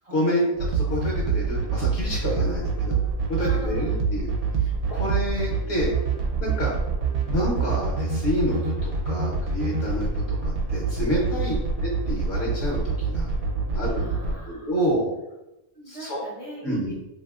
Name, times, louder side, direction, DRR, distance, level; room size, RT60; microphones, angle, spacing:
voice 1, 0.1-2.9 3.3-4.3 4.6-5.9 6.4-6.7 7.3-11.5 11.8-13.3 13.7-15.1 15.9-16.2 16.6-16.9, equal, 60° left, -4 dB, 1.0 m, -28 dB
sound 1, 0.5-14.3, right 4 dB, 80° right, 1.0 m, -25 dB
voice 2, 2.4-4.0 4.9-5.1 11.2-11.6 13.9-14.9 15.7-16.9, equal, 40° right, -7 dB, 0.5 m, -41 dB
2.9 x 2.7 x 2.3 m, 0.95 s
omnidirectional pair, 1.5 m